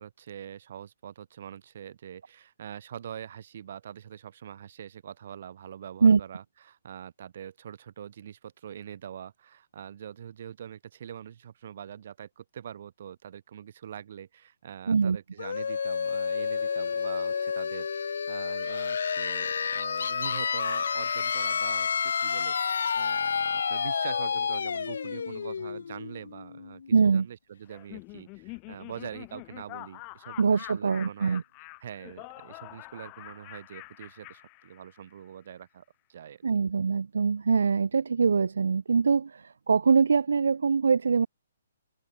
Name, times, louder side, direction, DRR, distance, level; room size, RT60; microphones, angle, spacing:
voice 1, 0.0-31.4 31.8-35.8 36.1-36.4, right 9 dB, 50° right, 2.5 m, -44 dB
voice 2, 14.9-15.2 26.9-27.3 30.4-31.4 36.4-41.3, right 5 dB, 85° right, 0.3 m, -23 dB
sound 1, 15.4-26.9, left 6 dB, 70° left, 0.4 m, -30 dB
Laughter, 27.7-35.2, left 32 dB, 20° left, 3.2 m, -46 dB
hypercardioid pair, 165°, 0 cm